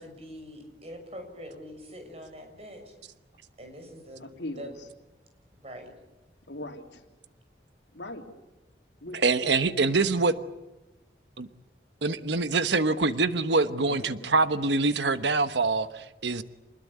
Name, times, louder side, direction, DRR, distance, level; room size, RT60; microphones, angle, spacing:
voice 1, 0.0-2.9 3.6-4.3 4.6-4.7 5.6-5.9, equal, 35° right, 5 dB, 6.4 m, -43 dB
voice 2, 4.2-4.7 6.5-7.0 7.9-8.3 9.0-10.1 13.7-14.3, left 1 dB, 80° left, 4 dB, 3.2 m, -40 dB
voice 3, 9.2-10.3 11.4-11.5 12.0-16.4, right 3 dB, 80° right, 11 dB, 1.1 m, -25 dB
27.5 x 21.0 x 8.6 m, 1.0 s
head